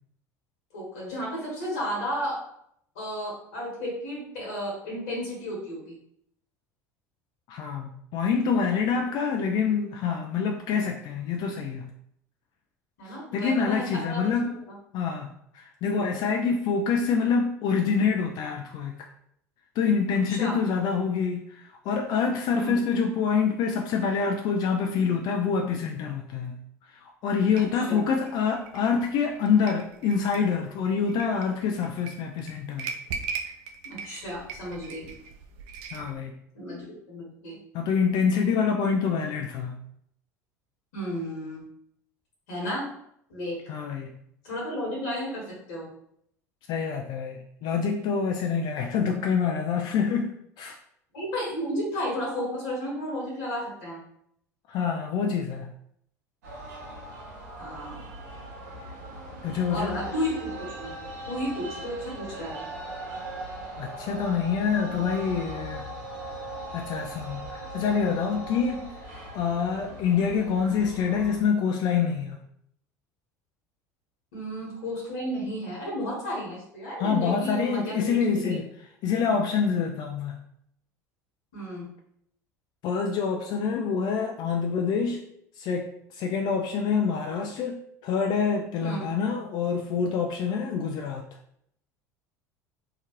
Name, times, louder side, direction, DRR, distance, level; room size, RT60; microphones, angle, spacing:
voice 1, 0.7-2.4 2.9-6.0 13.0-14.5 15.8-16.1 20.3-20.6 22.5-22.8 27.5-28.1 33.8-35.0 36.5-37.6 40.9-41.6 42.5-42.9 43.3-43.6 44.4-45.9 51.1-54.0 57.6-58.0 59.7-60.9 61.3-62.5 74.3-78.6 81.5-81.8 88.8-89.1, equal, 75° left, -4 dB, 1.2 m, -33 dB
voice 2, 7.5-11.9 13.0-14.6 14.9-19.1 19.8-32.9 35.9-36.3 37.7-39.8 43.7-44.1 46.7-50.8 54.7-55.7 59.4-60.0 63.8-65.9 66.7-68.9 69.3-72.4 77.0-78.7 79.0-80.4 82.8-85.2 85.6-91.2, left 6 dB, 55° left, 2 dB, 0.4 m, -26 dB
sound 1, 27.6-36.2, right 5 dB, 60° right, 0.4 m, -39 dB
sound 2, 56.4-71.4, right 1 dB, 80° right, 0.9 m, -39 dB
2.8 x 2.3 x 2.9 m, 0.71 s
hypercardioid pair, 75°, 9 cm